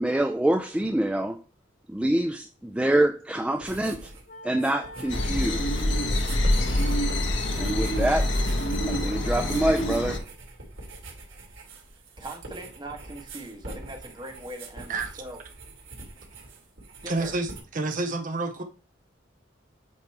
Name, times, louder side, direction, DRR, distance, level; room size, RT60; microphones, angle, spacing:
voice 1, 0.0-1.4 1.9-4.1 4.4-5.8 7.6-8.3 8.9-10.2, right 1 dB, 5° right, 0.3 m, -26 dB
sound 1, 3.6-4.2 4.5-17.6, right 2 dB, 85° right, 2.7 m, -43 dB
sound 2, 4.3-9.2, right 1 dB, 45° left, 1.2 m, -44 dB
sound 3, 5.1-10.2, left 1 dB, 70° left, 1.1 m, -25 dB
voice 2, 12.2-15.4 17.0-17.3, right 1 dB, 20° right, 1.3 m, -41 dB
voice 3, 17.1-18.6, right 3 dB, 40° right, 0.7 m, -29 dB
8.5 x 3.0 x 4.6 m
head